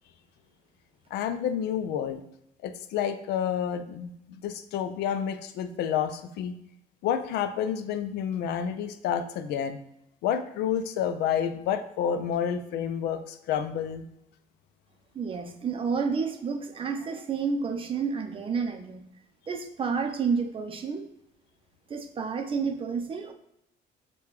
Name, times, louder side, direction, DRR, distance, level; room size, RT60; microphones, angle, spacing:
voice 1, 1.1-2.2 2.6-4.1 4.4-6.5 7.0-9.8 10.2-14.0, left 8 dB, 80° left, 11 dB, 0.4 m, -29 dB
voice 2, 15.1-19.0 19.5-21.0 21.9-23.3, right 5 dB, 30° right, 5 dB, 0.5 m, -30 dB
6.6 x 2.2 x 3.1 m, 0.79 s
cardioid pair, 110°, 17 cm